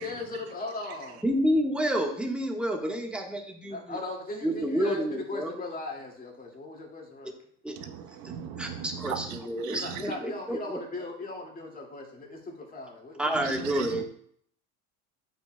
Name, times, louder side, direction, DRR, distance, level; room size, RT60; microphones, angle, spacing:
voice 1, 0.0-1.2 3.7-7.3 9.7-13.7, left 2 dB, 20° left, 0 dB, 2.2 m, -38 dB
voice 2, 1.2-4.0 4.4-5.6 7.2-7.3 7.6-7.8 8.6-10.8 13.2-14.0, equal, 5° right, 1 dB, 1.3 m, -29 dB
voice 3, 7.8-9.4 9.6-10.0 13.4-14.0, right 8 dB, 65° right, 6 dB, 1.1 m, -38 dB
9.0 x 7.7 x 2.2 m, 0.63 s
supercardioid pair, 105°, 39 cm